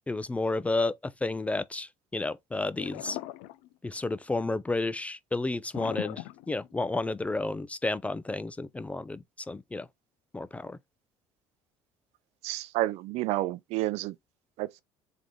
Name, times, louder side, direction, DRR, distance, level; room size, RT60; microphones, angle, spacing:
voice 1, 0.1-3.2 3.8-9.9 10.3-10.8, left 2 dB, 10° left, 0.3 m, -31 dB
sound 1, 2.7-4.1 5.7-7.1, left 16 dB, 85° left, 0.4 m, -39 dB
voice 2, 12.4-14.1 14.6-14.8, right 16 dB, 75° right, 0.5 m, -30 dB
3.8 x 3.4 x 3.3 m
cardioid pair, 110°, 11 cm